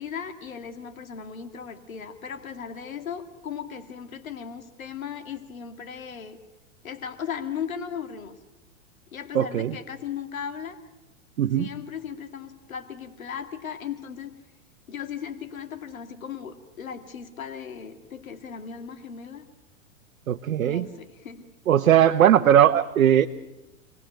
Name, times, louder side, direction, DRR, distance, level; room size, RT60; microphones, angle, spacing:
voice 1, 0.0-6.4 6.8-8.4 9.1-10.8 11.5-14.3 14.9-19.4 20.6-21.4 22.0-22.2, left 7 dB, 85° left, 8 dB, 2.5 m, -37 dB
voice 2, 9.3-9.7 11.4-11.7 20.3-20.9 21.7-23.3, right 10 dB, 85° right, 6 dB, 1.1 m, -19 dB
27.5 x 18.5 x 9.1 m, 1.0 s
hypercardioid pair, 110°, 40 cm